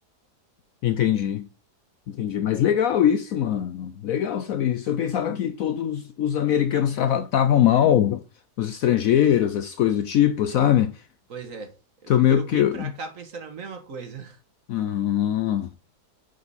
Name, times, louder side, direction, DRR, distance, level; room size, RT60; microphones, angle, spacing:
voice 1, 0.8-1.5 2.1-8.2 8.6-10.9 12.1-12.9 14.7-15.7, left 10 dB, 70° left, 0.8 m, -22 dB
voice 2, 11.3-11.7 12.0-14.4, right 5 dB, 50° right, 1.6 m, -37 dB
8.2 x 5.1 x 4.1 m
omnidirectional pair, 1.8 m